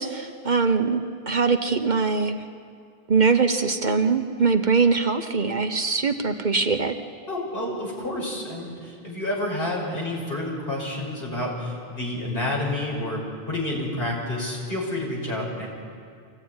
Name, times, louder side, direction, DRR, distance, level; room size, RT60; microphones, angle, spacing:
voice 1, 0.0-2.4 3.1-7.0, right 4 dB, 50° right, 7 dB, 1.0 m, -22 dB
voice 2, 7.3-15.7, left 1 dB, 65° left, -2 dB, 6.1 m, -29 dB
25.5 x 15.5 x 9.6 m, 2.2 s
omnidirectional pair, 1.0 m